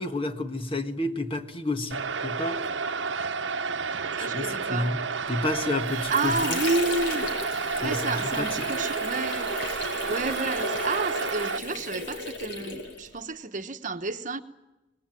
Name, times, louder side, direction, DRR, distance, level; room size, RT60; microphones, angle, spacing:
voice 1, 0.0-2.6 4.2-5.0 5.3-6.6 7.8-8.7, left 2 dB, 30° left, 1.5 m, -30 dB
sound 1, 1.9-11.6, right 5 dB, 85° right, 1.0 m, -31 dB
voice 2, 4.2-4.9 6.0-7.3 7.6-9.5 9.8-14.4, right 3 dB, 45° right, 1.2 m, -30 dB
Water / Sink (filling or washing), 5.5-13.2, left 2 dB, 70° left, 5.0 m, -35 dB
25.5 x 19.5 x 9.2 m
head